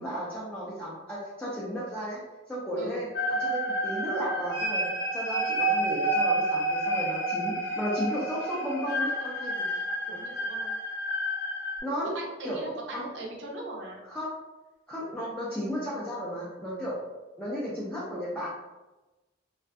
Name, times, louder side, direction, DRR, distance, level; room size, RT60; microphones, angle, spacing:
voice 1, 0.0-2.2 2.5-4.9 5.1-9.7 11.8-12.1 12.4-12.6 12.9-13.1 14.0-14.3 14.9-17.0 17.4-18.5, equal, 5° left, -8 dB, 0.4 m, -34 dB
sound 1, 3.1-11.8, right 1 dB, 65° left, 0.5 m, -29 dB
voice 2, 10.1-10.7 12.1-14.0, right 2 dB, 70° right, -1 dB, 0.5 m, -39 dB
2.5 x 2.4 x 2.2 m, 1.1 s
head